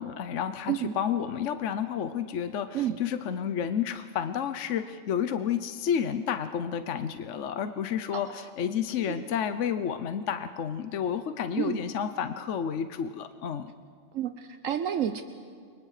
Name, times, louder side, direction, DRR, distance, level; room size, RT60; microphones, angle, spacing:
voice 1, 0.0-13.7, left 8 dB, 65° left, 10 dB, 1.1 m, -31 dB
voice 2, 14.1-15.2, right 10 dB, 75° right, 8 dB, 1.2 m, -29 dB
29.5 x 25.0 x 4.9 m, 2.2 s
omnidirectional pair, 1.4 m